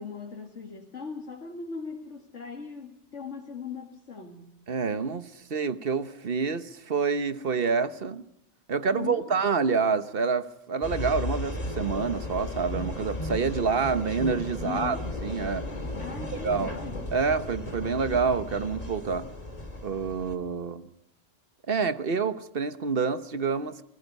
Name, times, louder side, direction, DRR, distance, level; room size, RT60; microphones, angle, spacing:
voice 1, 0.0-4.6 8.9-9.3 14.6-15.1 16.0-17.1, left 6 dB, 85° left, 2.4 m, -39 dB
voice 2, 4.7-8.2 8.7-15.0 15.2-15.7 16.4-16.7 17.1-19.3 19.8-20.9 21.7-23.8, right 5 dB, 55° right, 1.2 m, -27 dB
sound 1, 10.8-20.4, left 1 dB, 35° left, 2.4 m, -35 dB
29.5 x 19.5 x 5.4 m
omnidirectional pair, 1.2 m